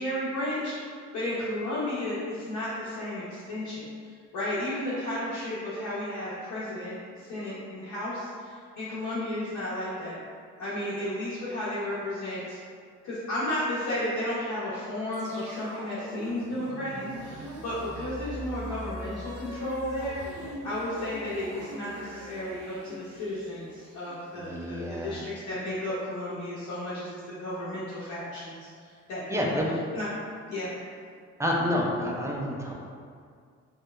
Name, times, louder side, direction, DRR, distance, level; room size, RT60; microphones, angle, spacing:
voice 1, 0.0-3.9 4.3-10.2 10.6-12.6 13.0-29.5 29.9-30.1 30.5-30.7, left 1 dB, 75° left, -11 dB, 0.7 m, -33 dB
sound 1, 15.1-25.3, equal, 90° right, 0.6 m, -42 dB
voice 2, 24.4-25.2 29.3-29.8 31.4-32.7, left 1 dB, 10° right, -2 dB, 0.3 m, -29 dB
2.9 x 2.0 x 2.3 m, 2.1 s
cardioid pair, 90°, 30 cm